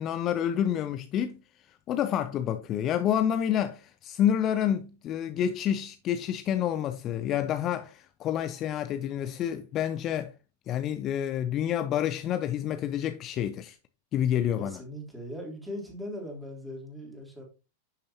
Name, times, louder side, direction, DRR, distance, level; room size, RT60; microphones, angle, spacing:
voice 1, 0.0-1.4 1.9-10.3 10.7-13.8 14.1-14.8, left 10 dB, 35° left, 0.6 m, -28 dB
voice 2, 14.6-17.4, equal, 5° right, 3.3 m, -39 dB
10.5 x 6.6 x 2.8 m
figure-of-eight pair, 90°, 0 cm